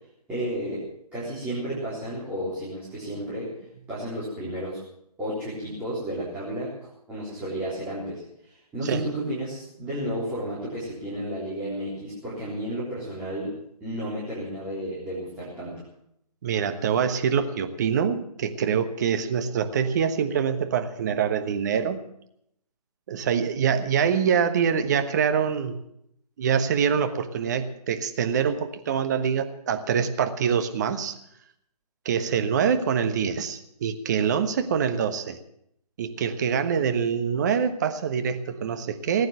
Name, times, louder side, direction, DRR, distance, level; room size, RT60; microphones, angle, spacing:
voice 1, 0.3-0.8 1.1-3.5 3.9-4.8 5.2-15.8, right 1 dB, 5° right, -10 dB, 3.8 m, -32 dB
voice 2, 16.4-22.0 23.1-25.8 26.4-31.1 32.0-35.4 36.0-39.3, right 7 dB, 25° right, 8 dB, 1.2 m, -25 dB
19.0 x 9.3 x 7.7 m, 0.75 s
figure-of-eight pair, 150°, 20 cm